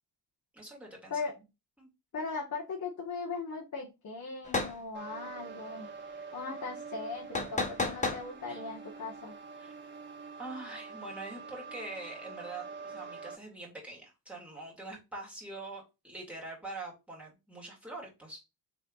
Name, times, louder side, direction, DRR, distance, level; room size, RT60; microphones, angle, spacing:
voice 1, 0.5-1.2 1.8-1.9 8.5-8.6 9.6-9.8 10.4-18.4, right 2 dB, 5° right, -3 dB, 2.4 m, -44 dB
voice 2, 2.1-5.9 6.3-9.3, left 4 dB, 45° left, -2 dB, 1.2 m, -39 dB
sound 1, 4.4-4.8 7.3-8.2, left 3 dB, 20° left, 0.8 m, -31 dB
sound 2, 4.9-13.3, right 5 dB, 25° right, 1.3 m, -45 dB
3.4 x 3.4 x 4.0 m, 0.25 s
cardioid pair, 100°, 41 cm